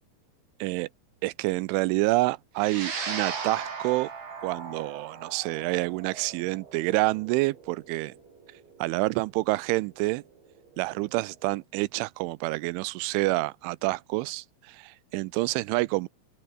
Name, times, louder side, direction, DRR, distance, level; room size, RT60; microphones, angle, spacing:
voice 1, 1.2-4.1 4.4-8.1 8.8-10.2 10.8-16.1, right 21 dB, 85° right, 3.0 m, -28 dB
sound 1, 2.6-11.1, right 5 dB, 70° right, 8.6 m, -39 dB
open air
omnidirectional pair, 5.5 m